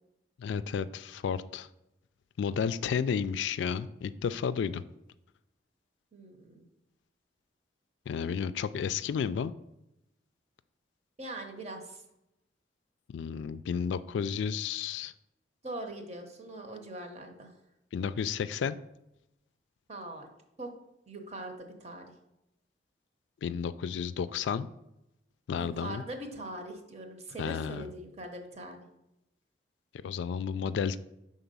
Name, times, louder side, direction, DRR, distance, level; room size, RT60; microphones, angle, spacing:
voice 1, 0.4-1.7 2.4-4.8 8.1-9.5 13.1-15.1 17.9-18.8 23.4-24.7 25.5-26.0 27.4-27.9 30.0-31.0, left 7 dB, 75° left, 14 dB, 0.3 m, -32 dB
voice 2, 6.1-6.6 11.2-12.0 15.6-17.5 19.9-20.3 20.6-20.7 21.1-22.1 25.5-28.9, right 2 dB, 35° right, 4 dB, 0.9 m, -42 dB
5.9 x 3.9 x 5.4 m, 0.86 s
head